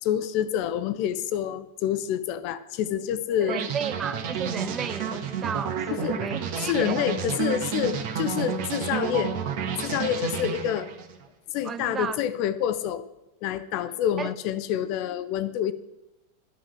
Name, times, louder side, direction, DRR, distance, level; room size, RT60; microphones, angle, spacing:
voice 1, 0.0-3.6 5.9-6.3 6.6-9.3 9.8-10.9 11.5-13.0 13.4-15.7, left 10 dB, 45° left, 0.7 m, -27 dB
voice 2, 3.4-7.0 11.6-12.2 14.2-14.3, right 7 dB, 20° right, 0.4 m, -33 dB
sound 1, 3.5-11.2, right 7 dB, 45° right, 1.4 m, -31 dB
12.5 x 5.7 x 8.7 m
figure-of-eight pair, 90°, 0 cm